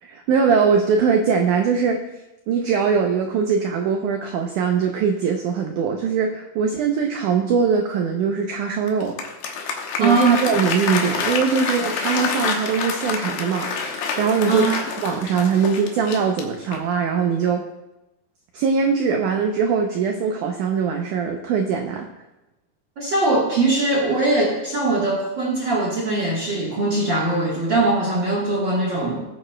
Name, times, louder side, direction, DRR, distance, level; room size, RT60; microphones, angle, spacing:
voice 1, 0.0-2.0 2.5-9.2 10.0-17.6 18.5-22.1, right 6 dB, 90° right, 3 dB, 1.7 m, -21 dB
Applause, 8.9-17.0, left 5 dB, 70° left, 2.5 m, -27 dB
voice 2, 10.0-10.4 14.5-14.7 23.0-29.2, right 2 dB, 70° right, -4 dB, 1.1 m, -21 dB
18.5 x 9.0 x 2.2 m, 0.96 s
omnidirectional pair, 4.5 m